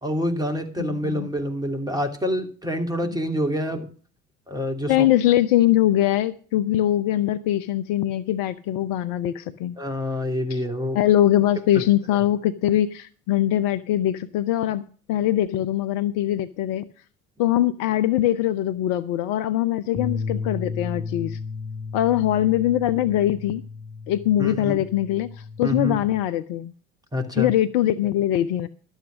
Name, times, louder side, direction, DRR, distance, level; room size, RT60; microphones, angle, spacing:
voice 1, 0.0-3.9 4.5-5.1 9.8-11.0 11.7-11.8 12.1-12.2 24.4-24.8 25.6-26.0 27.1-27.5, left 1 dB, 10° right, 2.8 m, -27 dB
voice 2, 0.8-1.3 4.9-9.8 10.5-10.6 10.9-14.8 15.1-16.9 17.4-21.4 21.9-23.6 24.1-26.7 27.4-28.7, left 13 dB, 50° left, 0.8 m, -22 dB
sound 1, 20.0-26.2, left 4 dB, 20° left, 0.9 m, -34 dB
12.5 x 8.1 x 6.3 m
figure-of-eight pair, 60°, 43 cm